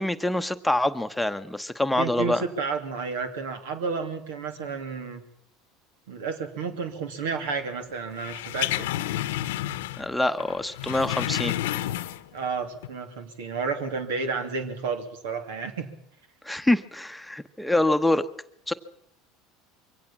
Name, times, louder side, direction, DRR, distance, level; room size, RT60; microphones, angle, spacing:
voice 1, 0.0-2.4 10.0-11.5 16.4-18.3 18.7-18.8, left 1 dB, 5° left, 8 dB, 0.9 m, -25 dB
voice 2, 2.0-5.2 6.1-8.7 12.3-15.9, right 5 dB, 85° right, 7 dB, 2.9 m, -31 dB
sound 1, 8.2-10.1 10.4-12.4 12.8-12.9, left 14 dB, 85° left, 1.0 m, -30 dB
23.0 x 17.0 x 7.4 m, 0.77 s
supercardioid pair, 100°, 0 cm